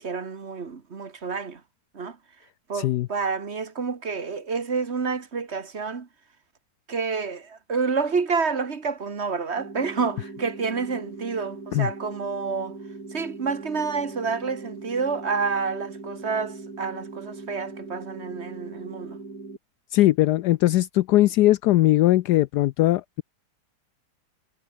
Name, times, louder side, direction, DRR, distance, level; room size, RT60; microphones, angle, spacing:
voice 1, 0.0-1.6 1.9-2.2 2.7-6.1 6.9-12.8 13.1-19.2, right 5 dB, 40° right, 1.8 m, -29 dB
voice 2, 2.7-3.1 11.7-11.9 19.9-23.2, left 16 dB, 75° left, 1.1 m, -20 dB
sound 1, 9.6-19.6, right 3 dB, 60° right, 4.5 m, -40 dB
omnidirectional pair, 1.8 m